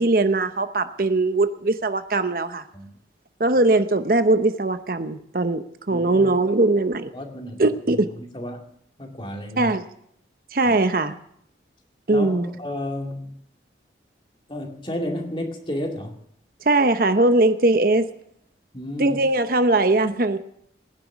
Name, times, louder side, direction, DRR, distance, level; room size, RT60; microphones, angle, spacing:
voice 1, 0.0-2.6 3.4-7.1 7.6-8.1 9.6-9.8 10.5-11.2 12.1-12.5 16.7-18.1 19.0-20.4, right 2 dB, 50° right, 10 dB, 0.8 m, -20 dB
voice 2, 5.9-6.3 7.1-7.7 8.2-8.7 9.0-9.7 10.6-10.7 12.1-13.4 14.5-16.2 18.7-19.2, left 1 dB, 25° left, 3 dB, 2.3 m, -32 dB
18.5 x 10.5 x 7.3 m, 0.72 s
head